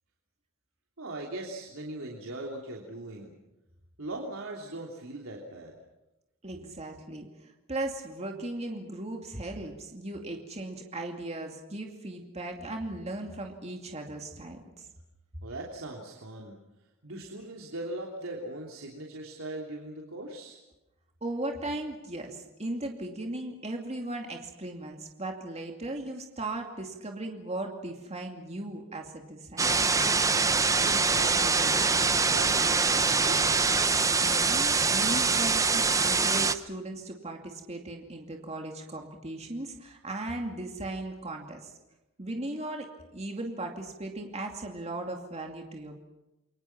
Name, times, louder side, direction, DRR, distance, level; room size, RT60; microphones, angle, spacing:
voice 1, 1.0-3.3 4.0-5.8 15.4-16.6 17.0-20.6 30.8-33.5, right 1 dB, 90° right, -1 dB, 3.2 m, -40 dB
voice 2, 6.4-14.8 21.2-29.8 34.2-41.7 42.2-46.0, right 2 dB, 30° right, 2 dB, 2.5 m, -37 dB
sound 1, 29.6-36.5, right 4 dB, 15° right, 0.8 m, -24 dB
29.5 x 23.0 x 6.0 m, 0.96 s
head